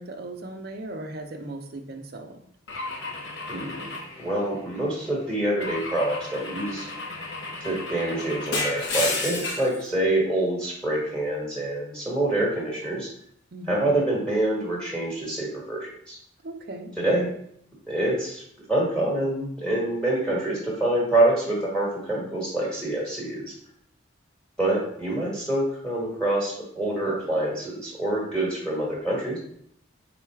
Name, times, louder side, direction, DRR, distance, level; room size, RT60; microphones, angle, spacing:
voice 1, 0.0-2.4 13.5-14.0 16.4-16.9, right 2 dB, 50° right, 5 dB, 0.5 m, -37 dB
Car / Engine / Glass, 2.7-4.9 5.6-9.8, left 3 dB, 65° left, 0.7 m, -32 dB
voice 2, 3.5-3.8 4.2-6.9 7.6-13.1 13.7-16.2 17.0-17.3 17.9-18.4 18.7-23.4 24.6-29.4, right 1 dB, 5° left, -5 dB, 1.3 m, -26 dB
3.7 x 2.3 x 4.4 m, 0.68 s
head